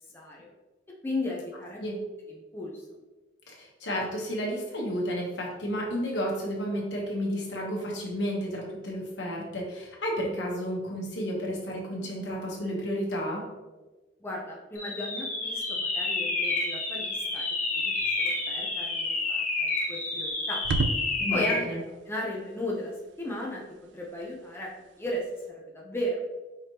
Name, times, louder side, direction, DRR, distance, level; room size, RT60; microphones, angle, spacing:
voice 1, 0.1-0.5 1.0-1.8 2.3-2.9 14.2-17.5 17.7-20.6 21.3-21.6 22.0-23.6 23.9-24.7 25.0-26.2, left 1 dB, 15° left, -3 dB, 0.5 m, -35 dB
voice 2, 3.5-13.5 21.2-21.8, equal, 75° left, -2 dB, 1.1 m, -32 dB
sound 1, 14.8-21.7, left 3 dB, 45° left, 0.9 m, -29 dB
sound 2, 16.6-25.5, right 3 dB, 70° right, 0.3 m, -39 dB
4.9 x 3.0 x 2.9 m, 1.2 s
head